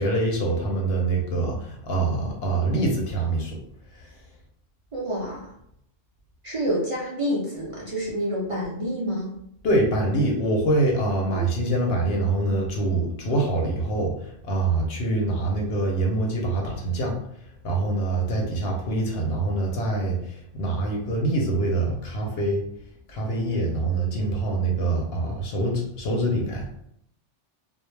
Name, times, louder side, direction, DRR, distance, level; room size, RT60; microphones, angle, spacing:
voice 1, 0.0-3.6 9.6-17.2 17.6-22.6 23.1-26.7, right 2 dB, 65° left, 0 dB, 0.8 m, -25 dB
voice 2, 4.9-5.5 6.4-9.3 11.3-11.4, equal, 55° right, -4 dB, 0.3 m, -28 dB
2.2 x 2.0 x 3.1 m, 0.72 s
omnidirectional pair, 1.2 m